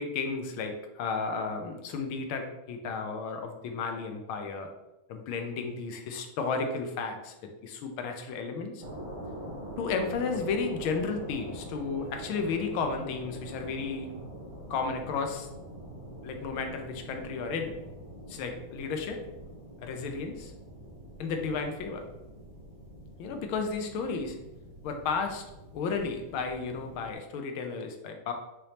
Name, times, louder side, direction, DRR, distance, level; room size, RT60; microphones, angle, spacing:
voice 1, 0.0-4.7 5.1-8.8 9.8-14.1 14.7-15.5 16.2-17.8 18.3-19.2 19.8-20.5 21.2-22.0 23.2-24.4 24.8-25.4 25.7-28.3, left 4 dB, 75° left, 4 dB, 1.5 m, -33 dB
sound 1, 8.8-27.1, equal, 75° right, 2.4 m, -44 dB
5.5 x 3.3 x 2.9 m, 0.97 s
omnidirectional pair, 2.4 m